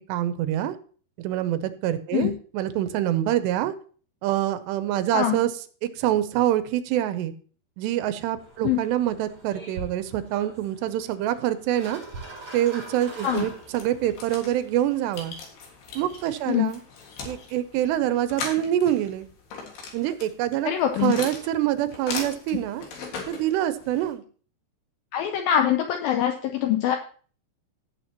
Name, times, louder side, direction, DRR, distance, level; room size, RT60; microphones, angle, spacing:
voice 1, 0.1-0.8 1.2-3.7 4.2-5.5 5.8-7.3 7.8-12.0 12.5-15.3 16.0-16.8 17.2-19.3 19.9-20.7 21.0-22.8 23.3-24.2, right 12 dB, 85° right, 12 dB, 2.8 m, -25 dB
sound 1, 8.4-14.2, right 2 dB, 25° right, 6.9 m, -42 dB
sound 2, 13.0-24.1, left 4 dB, 70° left, 3.7 m, -39 dB
voice 2, 20.7-21.1 25.1-27.0, left 10 dB, 85° left, 5 dB, 2.1 m, -23 dB
17.0 x 7.2 x 2.9 m, 0.42 s
omnidirectional pair, 4.9 m